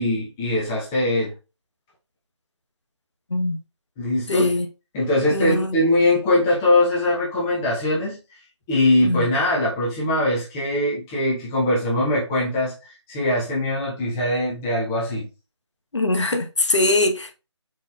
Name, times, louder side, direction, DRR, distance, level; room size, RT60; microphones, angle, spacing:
voice 1, 0.0-1.3 4.0-4.5 4.9-8.2 8.7-15.3, left 1 dB, 5° left, 0.4 m, -22 dB
voice 2, 3.3-3.6 4.3-4.7 5.3-5.8 9.0-9.3 15.9-17.3, left 2 dB, 75° left, 0.9 m, -22 dB
4.4 x 3.7 x 2.3 m
figure-of-eight pair, 160°, 15 cm